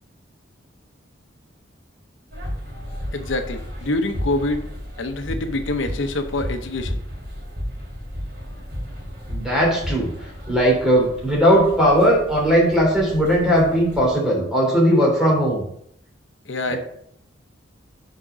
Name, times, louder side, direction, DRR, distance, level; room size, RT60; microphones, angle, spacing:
sound 1, 2.3-14.1, equal, 50° right, 3.1 m, -33 dB
voice 1, 3.1-4.6 5.0-7.0 16.5-16.8, left 2 dB, 85° left, 7 dB, 0.8 m, -25 dB
voice 2, 9.3-10.1 10.5-15.6 16.7-16.8, equal, 5° right, -4 dB, 3.0 m, -18 dB
6.4 x 4.9 x 6.1 m, 0.68 s
head